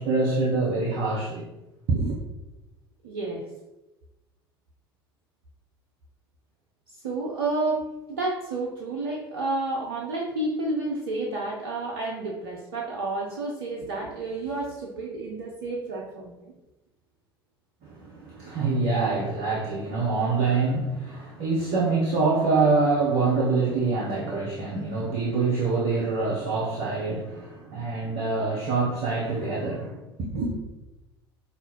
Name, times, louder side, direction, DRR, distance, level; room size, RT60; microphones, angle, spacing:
voice 1, 0.0-1.5 1.9-2.2 17.8-30.5, right 3 dB, 50° right, -4 dB, 0.9 m, -25 dB
voice 2, 3.0-3.4 6.9-16.5, right 2 dB, 70° right, -1 dB, 0.6 m, -30 dB
5.4 x 2.4 x 2.9 m, 1.0 s
figure-of-eight pair, 65°, 13 cm